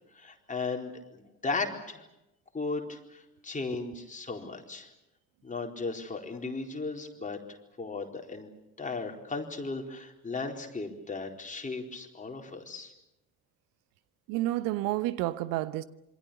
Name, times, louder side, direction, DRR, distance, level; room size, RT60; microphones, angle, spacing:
voice 1, 0.1-2.0 2.5-4.9 5.4-7.4 7.8-8.5 8.8-12.9, left 3 dB, 20° left, 4.2 m, -36 dB
voice 2, 14.3-15.8, right 16 dB, 55° right, 1.1 m, -30 dB
27.0 x 24.5 x 6.9 m
figure-of-eight pair, 55°, 39 cm